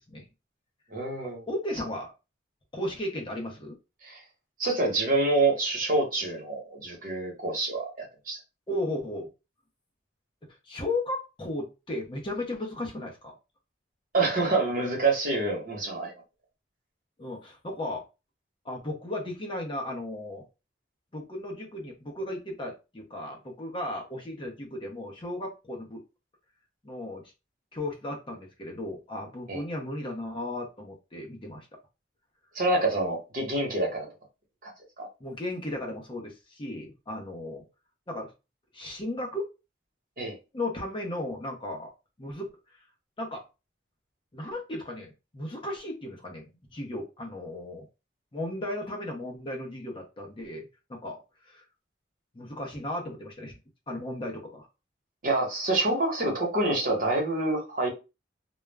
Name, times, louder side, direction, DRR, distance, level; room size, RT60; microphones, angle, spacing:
voice 1, 0.9-1.5 4.0-4.2 4.6-8.4 14.1-16.1 29.5-29.6 32.5-34.1 34.6-34.7 35.0-35.1 40.2-40.4 55.2-57.9, right 2 dB, 45° right, 1.0 m, -27 dB
voice 2, 1.5-2.1 2.7-3.8 8.7-9.3 10.6-13.4 17.2-18.0 18.6-20.4 21.1-26.0 26.8-27.3 27.7-31.7 35.2-37.6 38.1-38.3 38.7-39.5 40.5-41.9 42.2-42.8 43.2-43.4 44.3-47.9 48.3-51.6 52.3-53.6 53.9-54.7, left 1 dB, 25° left, 0.6 m, -35 dB
2.3 x 2.0 x 3.3 m
head